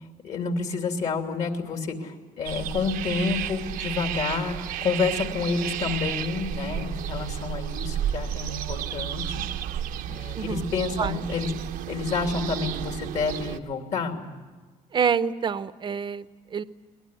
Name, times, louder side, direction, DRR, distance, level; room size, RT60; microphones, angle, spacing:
voice 1, 0.2-9.5 10.1-11.5 11.9-14.2, left 4 dB, 55° left, 4 dB, 3.0 m, -29 dB
sound 1, 2.4-13.6, right 11 dB, 75° right, 0.9 m, -32 dB
voice 2, 10.3-10.7 11.0-11.2 14.9-16.6, right 7 dB, 35° right, 14 dB, 0.8 m, -27 dB
23.0 x 19.0 x 10.0 m, 1.3 s
cardioid pair, 135°, 14 cm